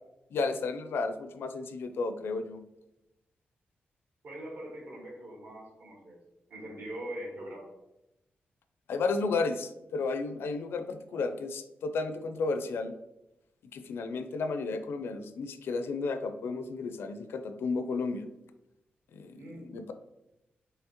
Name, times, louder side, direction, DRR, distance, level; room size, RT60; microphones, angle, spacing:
voice 1, 0.3-2.6 8.9-12.9 13.7-18.2 19.1-19.9, left 4 dB, 90° left, 8 dB, 0.5 m, -33 dB
voice 2, 4.2-6.2 6.5-7.7 19.3-19.7, right 1 dB, 60° right, -1 dB, 1.6 m, -42 dB
5.6 x 3.2 x 2.9 m, 0.90 s
wide cardioid pair, 170°, 4 cm